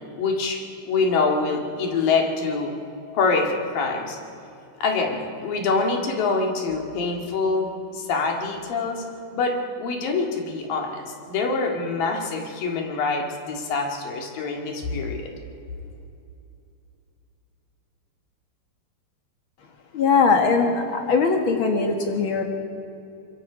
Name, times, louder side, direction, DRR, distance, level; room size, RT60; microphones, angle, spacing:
voice 1, 0.2-0.6 0.9-2.7 3.1-4.2 4.8-9.0 9.3-15.3, left 4 dB, 70° left, 2 dB, 3.7 m, -25 dB
voice 2, 19.9-22.4, left 4 dB, 50° left, 4 dB, 1.7 m, -20 dB
25.5 x 22.5 x 5.0 m, 2.6 s
omnidirectional pair, 4.3 m